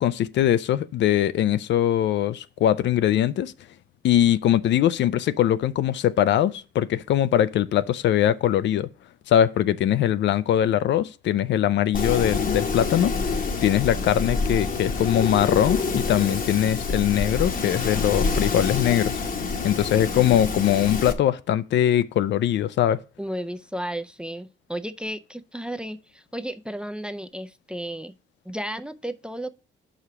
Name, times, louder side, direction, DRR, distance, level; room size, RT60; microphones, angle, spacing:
voice 1, 0.0-3.5 4.0-8.9 9.3-13.1 13.6-19.1 19.6-23.0, left 11 dB, 65° left, 0.4 m, -21 dB
Wind, 11.9-21.1, left 4 dB, 45° left, 1.0 m, -27 dB
voice 2, 23.2-28.2 28.5-29.5, right 1 dB, 5° right, 0.4 m, -33 dB
5.5 x 5.0 x 5.9 m
cardioid pair, 90°, 20 cm